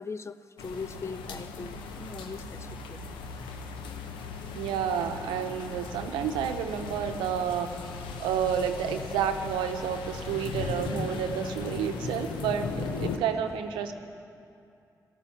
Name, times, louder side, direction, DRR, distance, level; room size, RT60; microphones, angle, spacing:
voice 1, 0.0-3.2 11.0-11.1 13.3-13.4, left 4 dB, 35° left, 15 dB, 0.5 m, -40 dB
sound 1, 0.6-13.2, left 4 dB, 85° left, 0.8 m, -38 dB
voice 2, 4.5-7.7 8.2-13.9, right 8 dB, 90° right, 7 dB, 0.7 m, -30 dB
13.5 x 11.5 x 7.1 m, 2.5 s
hypercardioid pair, 40°, 8 cm